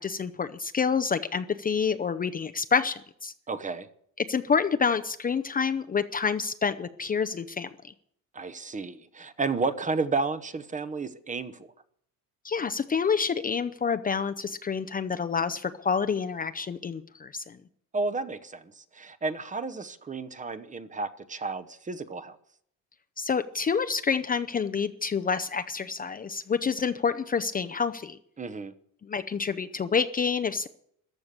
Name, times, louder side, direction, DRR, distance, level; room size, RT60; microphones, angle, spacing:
voice 1, 0.0-3.3 4.3-7.7 12.4-17.6 23.2-28.2 29.0-30.7, left 6 dB, 25° left, 0.6 m, -28 dB
voice 2, 3.5-3.9 8.3-11.7 17.9-22.4 28.4-28.7, right 4 dB, 20° right, 0.9 m, -32 dB
14.5 x 12.0 x 6.7 m
cardioid pair, 130°, 36 cm